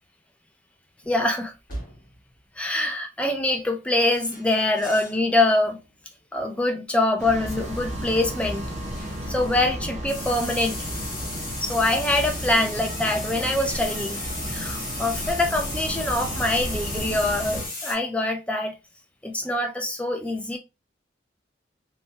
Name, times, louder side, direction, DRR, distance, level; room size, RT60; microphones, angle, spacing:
sound 1, 1.0-1.3 1.7-2.2 3.9-5.2 5.6-5.9 7.5-9.6 10.1-17.9, left 2 dB, 45° left, 1.2 m, -36 dB
voice 1, 1.1-1.5 2.6-5.8 6.3-8.6 9.3-10.8 11.6-14.2 14.5-18.7 19.2-20.6, left 2 dB, 5° left, 0.4 m, -24 dB
sound 2, 7.2-17.7, equal, 40° right, 0.6 m, -33 dB
3.1 x 2.2 x 2.7 m
head